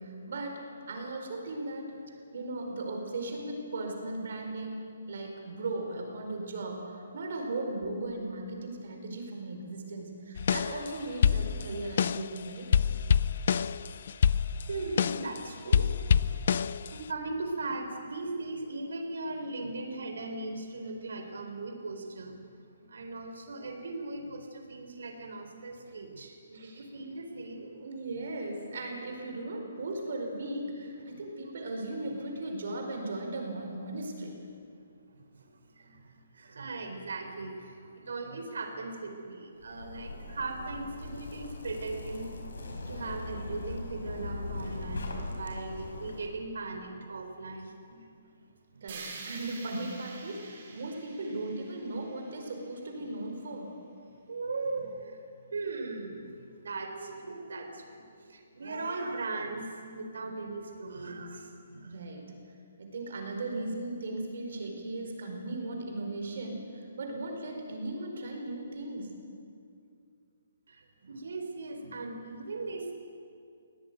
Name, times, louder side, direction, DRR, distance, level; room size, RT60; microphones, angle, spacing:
voice 1, 0.0-1.9 2.3-12.7 26.5-26.9 27.6-34.4 48.8-53.7 61.8-62.3 62.8-69.1, right 2 dB, 50° right, 3 dB, 4.8 m, -37 dB
sound 1, 10.4-10.9 11.2-12.4 12.7-15.4 15.7-17.1, left 7 dB, 40° left, 0.5 m, -26 dB
voice 2, 14.5-15.9 16.5-16.6 16.9-22.4 22.9-27.7 35.8-36.0 36.3-42.3 42.9-48.0 48.7-48.8 53.0-53.1 54.3-55.2 55.5-61.9 70.7-72.9, right 3 dB, 75° right, 4 dB, 4.0 m, -38 dB
Zipper (clothing), 39.6-46.3, left 2 dB, 85° left, 5.5 m, -40 dB
sound 2, 48.9-52.9, right 4 dB, 35° right, 4.3 m, -47 dB
23.0 x 18.0 x 9.3 m, 2.4 s
hypercardioid pair, 175°, 0 cm